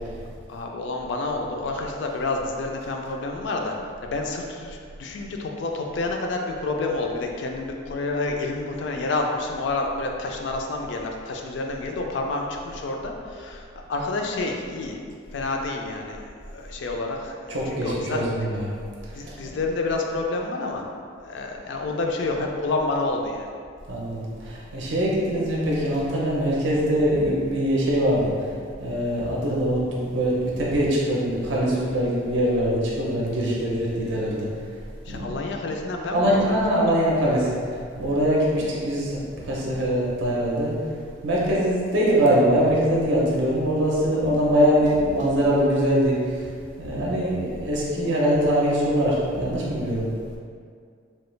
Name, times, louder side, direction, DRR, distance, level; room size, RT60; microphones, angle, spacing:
voice 1, 0.5-15.0 15.3-16.2 16.5-18.2 19.1-20.9 21.2-23.5 35.1-36.6, left 3 dB, 60° left, 2 dB, 0.3 m, -29 dB
voice 2, 17.5-18.7 19.0-19.5 23.9-28.5 28.8-34.5 35.1-35.4 35.9-37.6 38.0-40.8 41.2-46.5 46.8-50.1, equal, 65° right, -5 dB, 0.5 m, -23 dB
3.1 x 2.2 x 3.1 m, 2.2 s
head